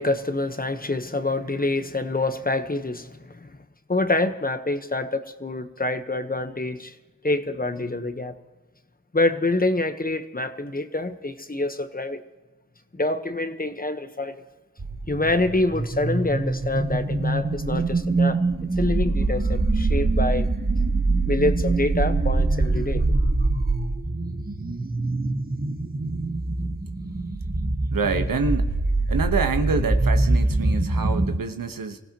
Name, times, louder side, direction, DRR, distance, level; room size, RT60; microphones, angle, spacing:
voice 1, 0.0-3.5 3.9-6.9 7.2-8.3 9.1-12.2 12.9-14.4 15.1-18.4 18.8-20.5 21.3-23.0, left 2 dB, 25° left, 9 dB, 1.2 m, -26 dB
sound 1, 14.8-31.4, right 2 dB, 25° right, 1.3 m, -24 dB
voice 2, 27.9-28.7 29.1-32.0, right 4 dB, 85° right, 7 dB, 1.3 m, -26 dB
25.0 x 16.0 x 3.0 m, 1.2 s
cardioid pair, 55°, 33 cm